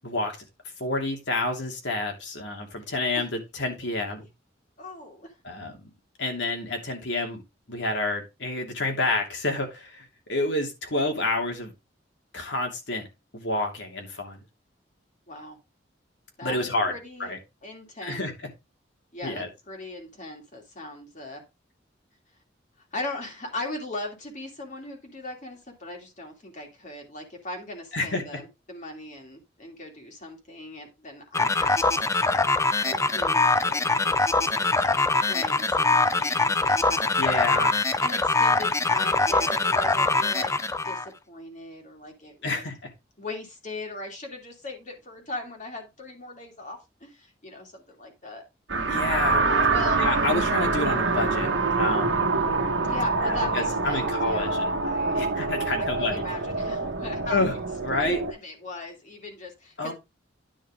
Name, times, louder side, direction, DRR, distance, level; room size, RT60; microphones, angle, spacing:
voice 1, 0.0-0.4 0.8-4.2 5.4-5.8 6.2-7.4 7.7-11.7 12.3-13.1 13.3-14.4 16.4-16.9 17.2-17.4 18.0-18.3 19.2-19.5 27.9-28.4 37.2-37.8 42.4-42.8 48.9-49.4 50.0-52.3 53.2-54.7 55.1-56.2 57.3-57.6 57.8-58.2 59.8-59.9, left 2 dB, 70° left, 2.8 m, -29 dB
voice 2, 4.8-5.3 15.3-15.6 16.4-17.3 17.6-18.2 19.1-21.4 22.9-32.5 32.8-37.2 38.0-42.6 43.2-48.4 49.7-50.0 52.8-55.2 55.8-57.4 58.0-59.9, left 2 dB, 40° left, 2.7 m, -39 dB
sound 1, 31.3-41.1, left 3 dB, 15° left, 0.6 m, -23 dB
sound 2, 48.7-58.3, right 3 dB, 90° right, 1.6 m, -25 dB
10.5 x 5.7 x 3.7 m
head